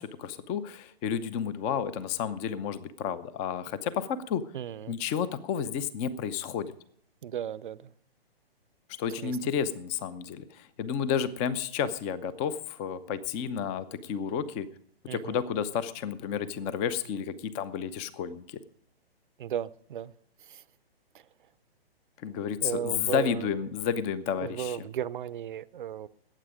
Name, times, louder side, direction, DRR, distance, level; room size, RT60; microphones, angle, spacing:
voice 1, 0.0-4.4 4.9-6.7 9.0-14.7 15.1-18.6 22.2-24.9, left 7 dB, 20° left, 0.8 m, -31 dB
voice 2, 4.5-4.9 7.2-7.9 9.2-9.3 15.1-15.4 19.4-20.1 20.5-20.6 22.6-23.5 24.4-26.1, right 10 dB, 55° right, 0.8 m, -35 dB
20.0 x 9.0 x 5.0 m
figure-of-eight pair, 130°, 31 cm